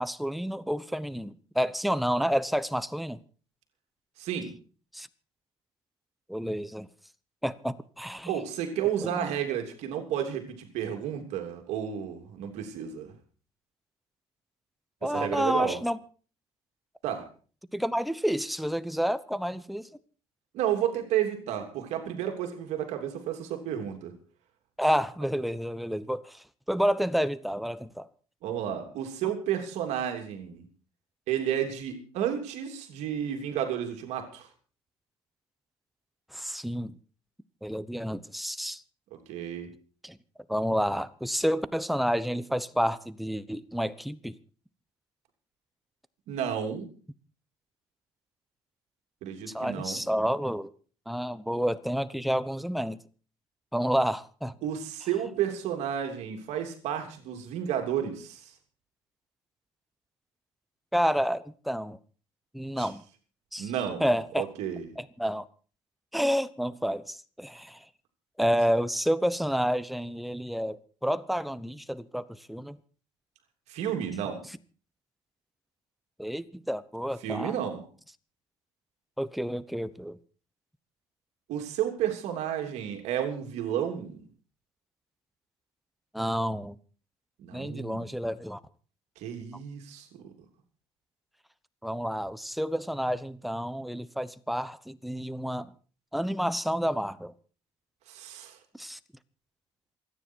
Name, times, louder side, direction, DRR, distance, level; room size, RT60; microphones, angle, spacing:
voice 1, 0.0-3.2 4.9-5.1 6.3-6.9 7.4-8.3 9.0-9.3 15.0-16.0 17.7-19.9 24.8-28.1 36.3-37.0 37.6-38.8 40.0-40.2 40.5-44.4 49.5-50.7 51.1-53.0 53.7-54.5 60.9-62.0 62.5-63.0 63.5-63.7 64.0-64.5 65.0-65.4 66.1-67.8 68.4-72.8 76.2-77.5 79.2-80.2 86.1-86.8 87.5-88.6 91.8-95.7 96.1-97.3 98.8-99.0, equal, ahead, 0.9 m, -29 dB
voice 2, 4.2-4.5 8.3-13.1 15.0-15.8 17.0-17.2 20.5-24.1 28.4-30.6 31.3-34.5 39.3-39.7 46.3-46.9 49.2-50.0 54.6-58.5 62.8-62.9 63.6-64.0 64.3-64.9 73.7-74.4 77.2-77.8 81.5-84.2 87.4-88.0 89.2-90.3 98.1-98.6, right 9 dB, 80° right, 3.1 m, -32 dB
28.0 x 9.9 x 4.6 m
cardioid pair, 115°, 11 cm